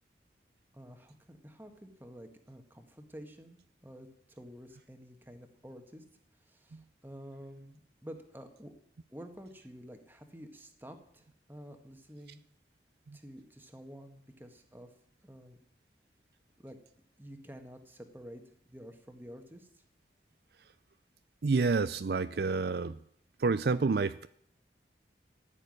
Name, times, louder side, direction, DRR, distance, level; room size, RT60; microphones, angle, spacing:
voice 1, 0.7-6.0 6.4-8.7 9.1-12.4 13.1-14.9 15.2-15.6 16.6-16.8 17.2-18.4 18.7-19.8, equal, 10° right, 6 dB, 1.6 m, -50 dB
voice 2, 21.4-23.0 23.4-24.3, right 4 dB, 60° right, 13 dB, 0.4 m, -29 dB
14.5 x 7.2 x 9.8 m, 0.70 s
head